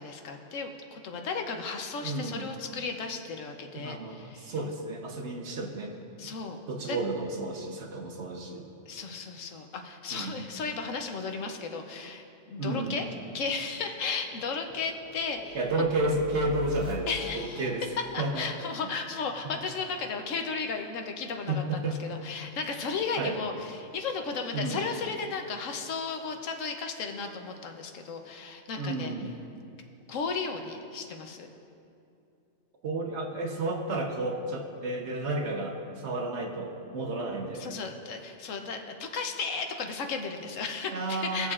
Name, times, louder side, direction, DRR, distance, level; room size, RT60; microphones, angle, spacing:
voice 1, 0.0-4.5 6.2-6.6 6.9-7.0 8.9-13.1 13.3-15.6 17.1-17.7 18.1-29.1 30.1-31.5 37.6-41.5, left 4 dB, 85° left, 5 dB, 1.2 m, -35 dB
voice 2, 2.0-2.5 3.7-5.9 6.7-8.7 10.1-10.4 12.6-13.0 15.5-17.1 17.3-17.8 18.2-18.5 21.5-22.0 23.2-23.4 24.5-24.8 28.8-29.3 32.8-37.8 40.9-41.5, right 2 dB, 65° right, 2 dB, 1.2 m, -32 dB
sound 1, 13.2-19.8, left 7 dB, 40° right, 1.6 m, -45 dB
20.5 x 6.9 x 2.5 m, 2.6 s
omnidirectional pair, 1.3 m